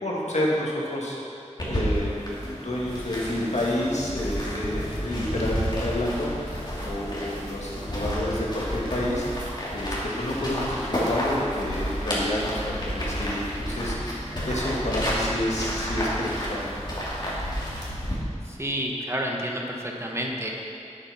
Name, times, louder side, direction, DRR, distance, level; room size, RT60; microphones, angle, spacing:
voice 1, 0.0-1.4 1.6-2.1 2.4-9.5 9.7-12.6 12.8-16.6, left 1 dB, 65° left, -5 dB, 2.2 m, -29 dB
sound 1, 1.6-18.2, equal, 35° left, 2.8 m, -30 dB
voice 2, 18.4-20.5, equal, 20° right, -1 dB, 1.3 m, -30 dB
8.9 x 8.7 x 5.9 m, 2.5 s
wide cardioid pair, 65°, 12 cm